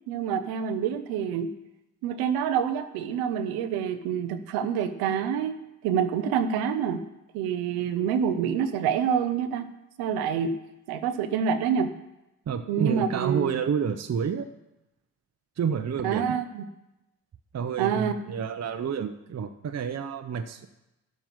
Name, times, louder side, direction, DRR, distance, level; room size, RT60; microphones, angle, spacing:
voice 1, 0.1-1.5 2.0-5.5 5.8-7.0 7.3-9.6 10.0-10.5 10.9-11.9 12.7-13.5 16.0-16.6 17.8-18.1, right 7 dB, 90° right, 10 dB, 0.8 m, -27 dB
voice 2, 12.5-14.5 15.6-16.4 17.5-20.7, right 7 dB, 45° right, 7 dB, 0.8 m, -29 dB
11.0 x 7.3 x 5.9 m, 0.93 s
supercardioid pair, 50°, 36 cm